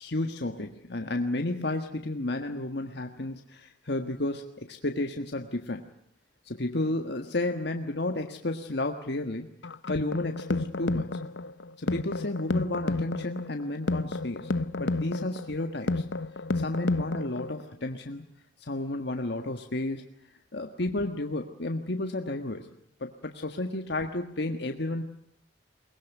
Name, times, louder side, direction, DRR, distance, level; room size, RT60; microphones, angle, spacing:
voice 1, 0.0-5.8 6.4-9.5 9.9-11.1 11.8-14.5 14.8-16.0 16.5-18.2 18.6-20.0 20.5-22.7 23.0-25.0, left 2 dB, 65° left, 5 dB, 1.6 m, -32 dB
sound 1, 9.6-17.6, left 2 dB, 85° left, 0.9 m, -31 dB
22.5 x 20.5 x 9.3 m, 0.67 s
head